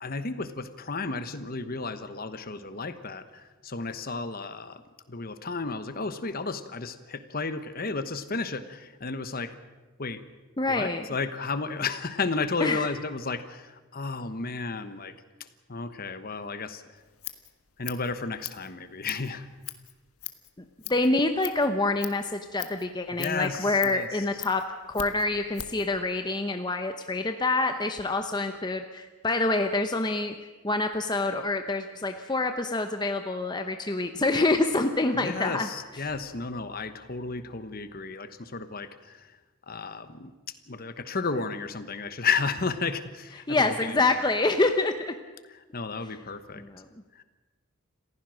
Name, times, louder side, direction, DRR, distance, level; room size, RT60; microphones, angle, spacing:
voice 1, 0.0-4.8 5.1-9.6 10.0-10.2 10.7-15.1 15.7-17.0 17.8-19.5 23.2-24.2 35.1-39.4 39.7-40.3 40.7-44.1 45.5-46.6 47.1-47.2, left 4 dB, 40° left, 11 dB, 1.1 m, -33 dB
voice 2, 10.6-11.0 12.6-12.9 20.9-30.3 30.6-35.7 43.5-44.9 46.6-46.8, left 2 dB, 20° left, 6 dB, 0.8 m, -26 dB
Scissors, 17.0-25.9, left 12 dB, 75° left, 1.4 m, -42 dB
28.0 x 15.5 x 6.4 m, 1.2 s
head